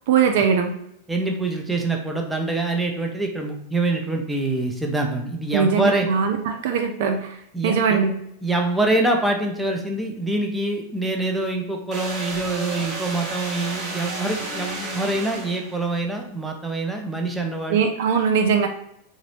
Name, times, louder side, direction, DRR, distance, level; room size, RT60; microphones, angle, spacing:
voice 1, 0.1-0.7 5.5-7.4 7.6-8.1 17.7-18.7, right 6 dB, 55° right, 4 dB, 0.4 m, -20 dB
voice 2, 1.1-6.1 7.5-8.0 8.4-17.8, right 2 dB, 5° right, 1 dB, 0.6 m, -25 dB
sound 1, 11.9-15.9, right 3 dB, 30° right, 0.9 m, -32 dB
3.9 x 2.6 x 3.0 m, 0.76 s
figure-of-eight pair, 90°, 0 cm